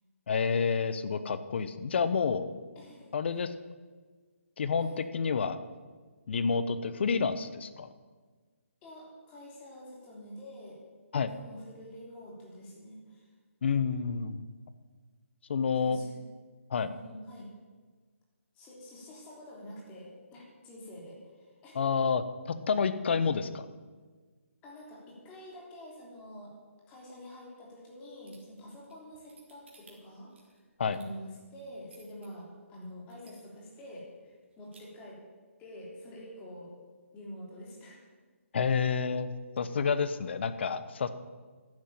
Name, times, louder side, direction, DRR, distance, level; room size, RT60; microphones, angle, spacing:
voice 1, 0.3-2.5 3.1-3.5 4.6-5.6 6.3-7.9 11.1-11.3 13.6-14.4 15.5-16.0 16.7-16.9 21.7-23.7 30.8-31.0 38.5-41.1, left 5 dB, 50° left, 12 dB, 1.0 m, -29 dB
voice 2, 2.7-3.1 4.8-5.0 8.8-10.8 11.2-13.3 15.8-16.1 16.8-17.5 18.5-21.8 24.6-26.5 26.9-30.5 30.9-35.2 35.6-36.7 37.1-38.0, equal, 15° left, -3 dB, 3.4 m, -47 dB
sound 1, 28.3-32.3 32.7-32.8 33.1-33.7 34.1-34.2 34.4-34.8, right 5 dB, 50° right, 3.9 m, -59 dB
11.0 x 9.7 x 8.9 m, 1.4 s
hypercardioid pair, 155°, 8 cm